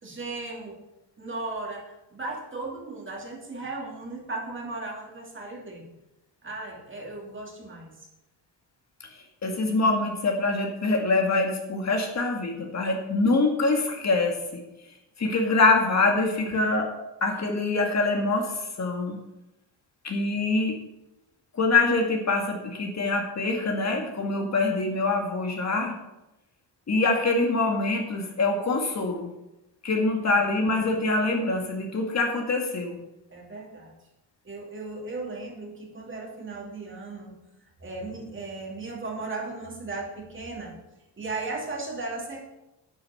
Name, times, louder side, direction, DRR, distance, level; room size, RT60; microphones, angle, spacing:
voice 1, 0.0-0.8 1.2-5.9 6.4-8.0 30.2-30.4 33.3-33.9 34.4-37.3 37.8-40.7 41.2-42.4, right 3 dB, 30° right, 0 dB, 2.8 m, -36 dB
voice 2, 9.4-14.6 15.2-16.9 17.2-19.2 20.0-20.8 21.5-26.0 26.9-29.3 29.8-33.0, left 3 dB, 40° left, 2 dB, 2.0 m, -24 dB
9.5 x 8.7 x 6.6 m, 0.93 s
cardioid pair, 125°, 42 cm